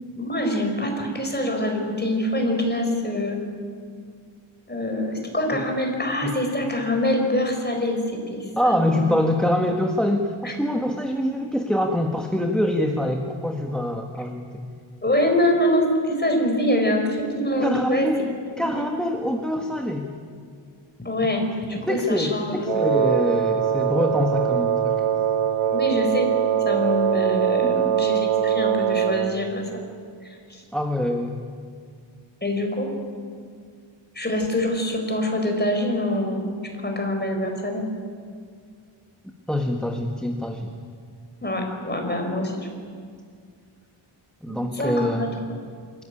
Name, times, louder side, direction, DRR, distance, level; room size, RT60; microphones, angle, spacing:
voice 1, 0.2-3.4 4.7-9.1 10.4-10.5 15.0-18.1 18.6-18.9 21.0-22.7 25.7-26.3 26.7-29.8 30.5-30.6 32.4-32.9 34.1-36.6 36.8-37.8 41.4-42.7 44.5-45.3, left 1 dB, 20° left, 2 dB, 4.7 m, -25 dB
voice 2, 8.6-14.6 17.6-18.3 18.6-20.1 21.9-25.0 27.6-28.0 30.7-31.4 39.5-40.7 44.4-45.3, left 1 dB, ahead, 3 dB, 1.4 m, -25 dB
Wind instrument woodwind instrument, 22.7-29.4, right 9 dB, 80° right, 1.4 m, -22 dB
25.0 x 14.5 x 9.9 m, 2.1 s
wide cardioid pair, 105°, 49 cm